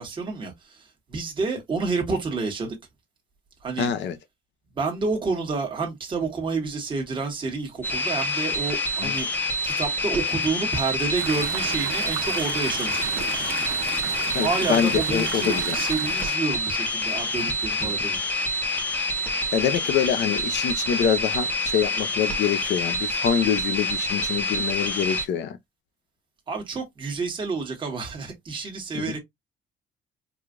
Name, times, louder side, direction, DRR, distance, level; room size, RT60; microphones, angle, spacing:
voice 1, 0.0-2.8 3.6-3.9 4.7-9.3 9.6-13.3 14.4-18.2 26.5-29.2, right 4 dB, 25° right, 1.3 m, -29 dB
voice 2, 3.8-4.2 9.0-9.1 14.3-15.8 19.5-25.6 28.9-29.2, left 8 dB, 60° left, 0.6 m, -25 dB
sound 1, 7.8-25.2, left 1 dB, 10° left, 0.9 m, -27 dB
Chatter / Stream, 11.1-16.4, right 10 dB, 85° right, 0.8 m, -34 dB
4.8 x 2.4 x 2.4 m
cardioid pair, 180°, 20 cm